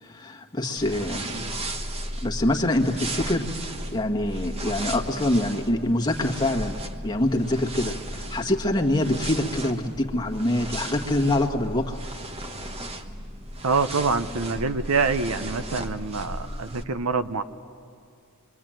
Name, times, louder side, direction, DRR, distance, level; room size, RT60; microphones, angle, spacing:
voice 1, 0.0-1.4 2.2-6.8 7.0-12.0, left 1 dB, 20° left, 1 dB, 1.7 m, -25 dB
sound 1, 0.8-16.8, right 1 dB, 30° right, 1.3 m, -35 dB
voice 2, 13.6-17.4, right 4 dB, 70° right, 11 dB, 0.8 m, -26 dB
26.5 x 24.0 x 9.1 m, 2.4 s
head